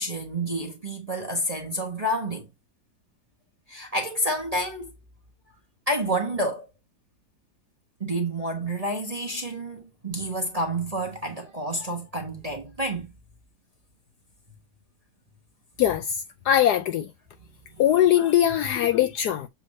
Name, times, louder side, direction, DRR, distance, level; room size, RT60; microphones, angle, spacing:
voice 1, 0.0-2.5 3.7-4.9 5.9-6.7 8.0-13.0 17.8-17.9 18.6-18.7, right 1 dB, 25° right, 0.8 m, -29 dB
voice 2, 15.8-17.1 17.8-19.5, left 11 dB, 75° left, 1.0 m, -21 dB
7.1 x 3.4 x 4.1 m
omnidirectional pair, 2.0 m